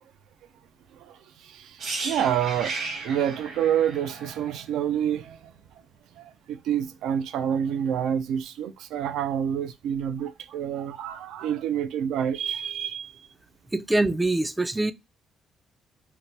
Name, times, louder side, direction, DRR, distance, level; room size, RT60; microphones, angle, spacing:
voice 1, 0.9-2.8 3.0-5.5 6.2-13.2, right 9 dB, 85° right, 0.3 m, -28 dB
sound 1, 1.8-5.7 5.9-6.1, right 3 dB, 70° right, 1.1 m, -35 dB
voice 2, 13.7-14.9, right 2 dB, 15° right, 0.3 m, -24 dB
2.9 x 2.1 x 3.0 m
cardioid pair, 90°, 0 cm